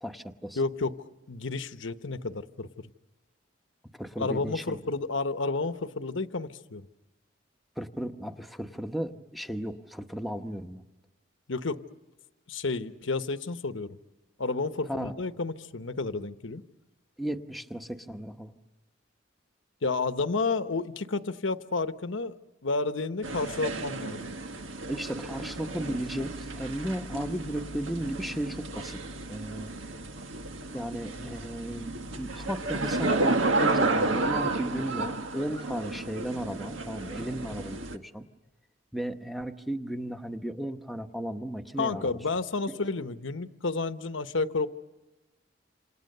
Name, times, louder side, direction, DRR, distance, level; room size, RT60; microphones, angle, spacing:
voice 1, 0.0-0.6 4.0-4.8 7.8-10.8 14.9-15.1 17.2-18.5 24.9-29.0 29.3-29.7 30.7-38.2 38.9-42.1 42.7-42.8, right 1 dB, ahead, 1.0 m, -35 dB
voice 2, 0.6-2.9 4.2-6.9 11.5-11.8 12.5-14.0 14.4-16.6 19.8-22.4 22.6-24.2 41.8-44.7, left 3 dB, 80° left, 1.0 m, -31 dB
sound 1, 23.2-38.0, right 2 dB, 85° right, 1.6 m, -32 dB
28.0 x 27.5 x 6.7 m
head